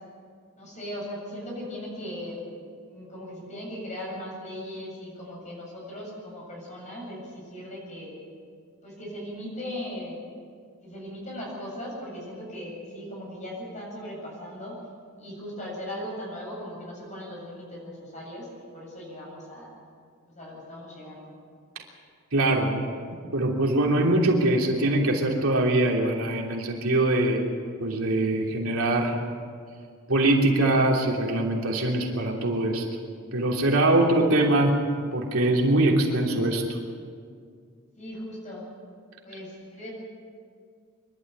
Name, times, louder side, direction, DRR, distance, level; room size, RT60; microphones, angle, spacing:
voice 1, 0.6-2.4 2.9-8.1 8.8-10.2 10.8-14.8 15.2-18.5 18.7-19.7 20.3-21.3 38.0-38.7 39.2-39.9, left 1 dB, 35° left, -3 dB, 7.7 m, -38 dB
voice 2, 22.3-22.8 23.1-27.4 27.8-29.2 30.1-32.9 33.3-34.8 35.1-36.6, right 1 dB, 75° right, -1 dB, 3.2 m, -23 dB
24.5 x 12.5 x 9.4 m, 2.1 s
head